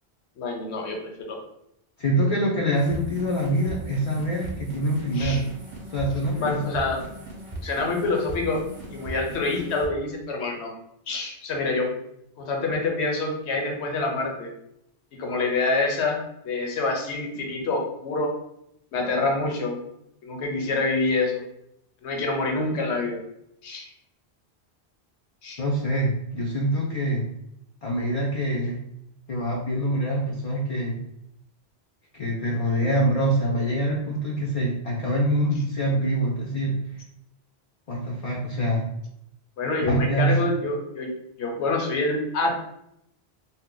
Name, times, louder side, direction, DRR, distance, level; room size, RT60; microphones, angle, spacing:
voice 1, 0.4-1.4 5.1-5.4 6.3-7.0 7.6-8.6 8.9-10.7 11.1-11.9 12.4-14.5 15.2-18.4 18.9-19.8 20.2-21.4 22.0-23.2 23.6-23.9 25.4-25.6 39.6-41.1 41.4-42.5, left 3 dB, 90° left, 1 dB, 1.0 m, -26 dB
voice 2, 2.0-5.5 5.9-6.7 25.6-27.3 27.8-28.8 29.3-31.0 32.1-36.8 37.9-38.9 39.9-40.3, right 1 dB, 50° left, -3 dB, 0.4 m, -25 dB
sound 1, 2.7-9.9, right 1 dB, 35° right, 0.7 m, -38 dB
2.8 x 2.0 x 3.7 m, 0.78 s
omnidirectional pair, 1.1 m